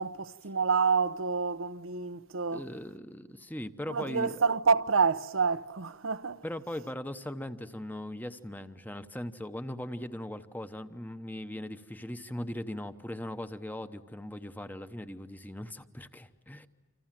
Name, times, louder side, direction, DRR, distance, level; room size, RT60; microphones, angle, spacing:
voice 1, 0.0-2.6 3.9-6.4, right 5 dB, 80° right, 0.9 m, -28 dB
voice 2, 2.5-4.4 6.4-16.7, left 1 dB, 10° left, 0.9 m, -39 dB
28.5 x 26.5 x 7.5 m
head